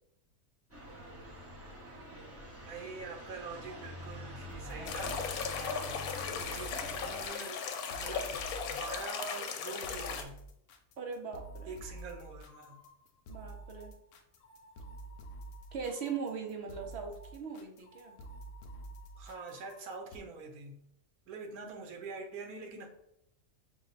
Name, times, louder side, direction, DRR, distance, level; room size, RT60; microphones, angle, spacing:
sound 1, 0.7-7.3, left 1 dB, 15° right, 0.6 m, -46 dB
voice 1, 2.6-5.2 5.5-7.7 7.9-10.4 11.7-12.8 19.2-20.8 21.3-22.9, right 4 dB, 90° right, 4 dB, 1.2 m, -45 dB
sound 2, 4.5-20.2, right 2 dB, 70° left, 0.9 m, -49 dB
sound 3, 4.8-10.2, left 6 dB, 85° left, 1.1 m, -37 dB
voice 2, 11.0-11.8 13.3-14.0 15.7-18.2, right 6 dB, 60° right, 3 dB, 0.7 m, -40 dB
5.0 x 2.1 x 3.9 m, 0.75 s
omnidirectional pair, 1.5 m